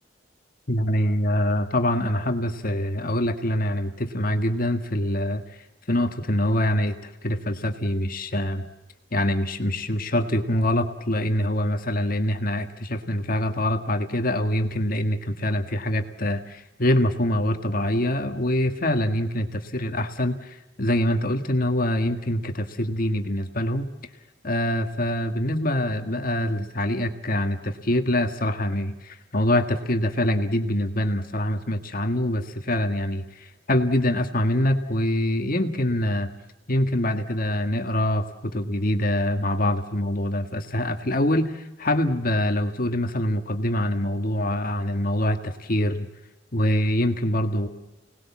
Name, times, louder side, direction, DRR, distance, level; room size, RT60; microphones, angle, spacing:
voice 1, 0.7-5.6 5.9-8.6 9.1-23.9 24.4-36.3 36.7-46.1 46.5-47.7, left 1 dB, 50° left, 6 dB, 1.8 m, -24 dB
30.0 x 19.5 x 7.4 m, 1.0 s
head